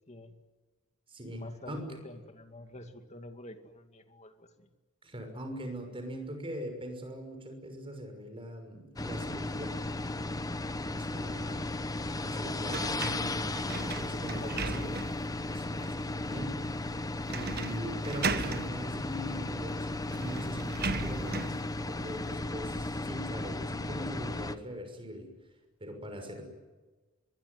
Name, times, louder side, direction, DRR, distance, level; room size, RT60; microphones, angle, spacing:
voice 1, 0.1-0.4 1.3-4.7 14.3-15.0, left 1 dB, 30° left, 7 dB, 2.4 m, -47 dB
voice 2, 1.1-2.0 5.0-9.8 10.9-12.0 12.2-14.9 15.5-25.3 25.8-26.5, equal, 25° right, 6 dB, 6.2 m, -41 dB
sound 1, 9.0-24.6, left 2 dB, 15° left, 1.0 m, -35 dB
sound 2, 12.7-15.3 15.8-15.9 17.3-17.8 18.0-18.7 19.7-19.8 20.1-21.6, right 4 dB, 45° right, 1.5 m, -36 dB
24.0 x 22.0 x 9.7 m, 1.3 s
head